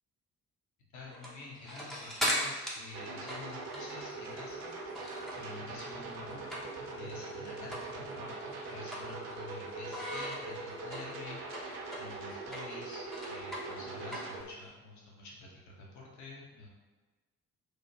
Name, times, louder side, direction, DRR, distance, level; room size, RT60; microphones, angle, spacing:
voice 1, 0.9-6.5 6.8-16.7, left 3 dB, 40° left, -3 dB, 0.8 m, -49 dB
sound 1, 1.1-5.6 5.9-7.0 7.3-7.4 7.7-7.9 8.3-9.5 9.9-14.7, equal, ahead, 0.6 m, -38 dB
sound 2, 2.9-14.4, right 3 dB, 55° right, 0.6 m, -42 dB
3.2 x 2.1 x 2.9 m, 1.2 s
figure-of-eight pair, 40°, 44 cm